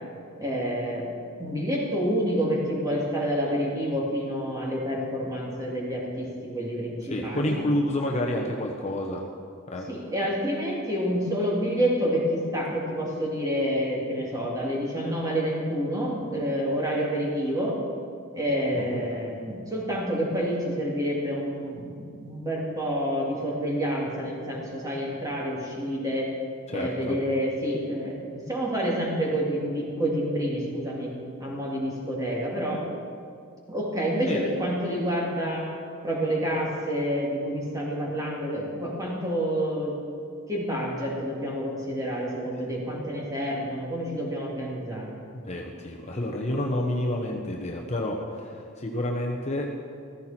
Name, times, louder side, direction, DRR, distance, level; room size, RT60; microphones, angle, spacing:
voice 1, 0.4-1.1 1.4-7.6 9.9-17.8 18.3-26.3 26.7-31.1 31.4-32.8 33.7-35.7 36.0-40.0 40.5-45.1, equal, 15° right, -4 dB, 2.8 m, -28 dB
voice 2, 7.1-9.2 9.7-9.9 18.7-19.0 26.7-27.2 34.3-34.4 45.5-49.7, left 1 dB, 35° left, 0 dB, 1.0 m, -29 dB
15.0 x 14.5 x 4.4 m, 2.3 s
head